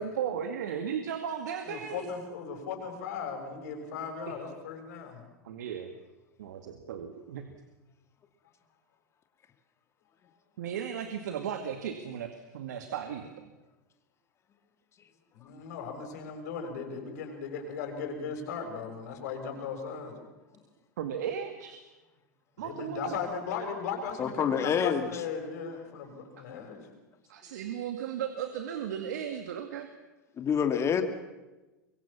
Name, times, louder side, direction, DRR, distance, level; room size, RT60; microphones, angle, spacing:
voice 1, 0.0-2.1 4.3-4.4 5.4-5.9 6.4-7.5 10.6-13.3 21.0-21.8 22.6-23.1 27.3-29.9, right 8 dB, 70° right, 7 dB, 2.1 m, -35 dB
voice 2, 1.7-5.2 15.3-20.2 22.6-26.9, left 6 dB, 65° left, 3 dB, 6.9 m, -37 dB
voice 3, 24.2-25.1 30.4-31.0, left 7 dB, 30° left, 7 dB, 2.4 m, -27 dB
24.5 x 23.5 x 7.3 m, 1.1 s
hypercardioid pair, 95°, 10 cm